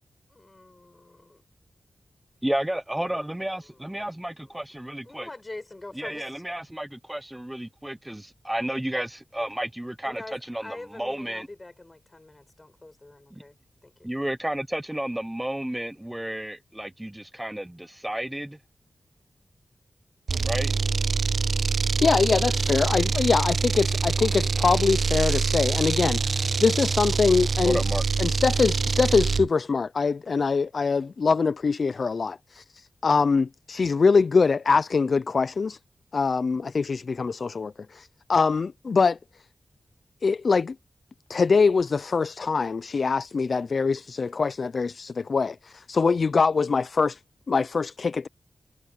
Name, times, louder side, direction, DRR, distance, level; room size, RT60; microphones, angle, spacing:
voice 1, 0.3-1.4 3.4-4.1 4.4-4.6 5.0-6.4 10.0-13.6 13.8-13.9, left 2 dB, 25° left, 6.6 m, -44 dB
voice 2, 2.4-5.3 6.0-11.5 13.3-13.4 14.0-18.6 20.4-20.7 27.6-28.0, right 1 dB, 10° right, 0.9 m, -32 dB
sound 1, 20.3-29.5, right 4 dB, 65° right, 0.5 m, -25 dB
voice 3, 22.0-27.8 28.2-32.6 33.0-35.8 36.1-39.2 40.2-40.8 41.3-47.2 47.5-48.3, left 4 dB, 60° left, 0.4 m, -23 dB
wide cardioid pair, 85°, 0 cm